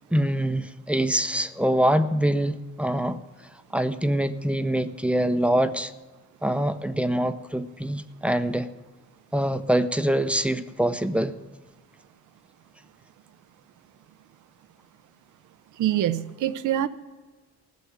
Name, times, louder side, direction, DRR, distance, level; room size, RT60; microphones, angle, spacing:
voice 1, 0.1-3.2 3.7-5.9 6.4-8.7 9.3-11.3, right 1 dB, 5° right, 9 dB, 0.7 m, -24 dB
voice 2, 15.8-16.9, right 12 dB, 80° right, 13 dB, 0.8 m, -24 dB
15.5 x 7.0 x 9.5 m, 1.3 s
cardioid pair, 90°, 30 cm